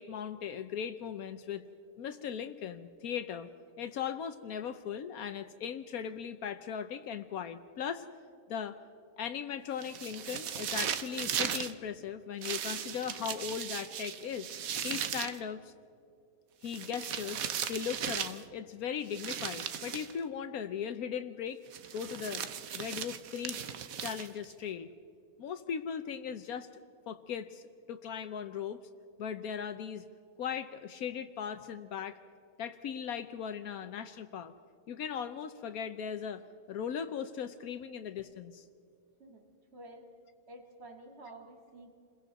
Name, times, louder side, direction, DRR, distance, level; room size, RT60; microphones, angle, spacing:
voice 1, 0.0-1.6 2.0-3.5 3.8-8.1 8.5-8.8 9.2-14.5 14.8-15.7 16.6-21.6 21.9-22.4 22.7-23.6 24.0-24.9 25.4-26.7 27.1-28.8 29.2-30.1 30.4-32.2 32.6-34.5 34.9-38.7, left 8 dB, 75° left, 10 dB, 1.2 m, -38 dB
sound 1, 9.8-11.7 12.4-15.4 16.6-18.4 19.1-20.1 21.7-24.5, right 8 dB, 70° right, 1.3 m, -37 dB
voice 2, 39.2-40.1 40.5-41.9, right 2 dB, 45° right, 2 dB, 2.4 m, -51 dB
29.5 x 22.0 x 4.1 m, 2.4 s
omnidirectional pair, 1.6 m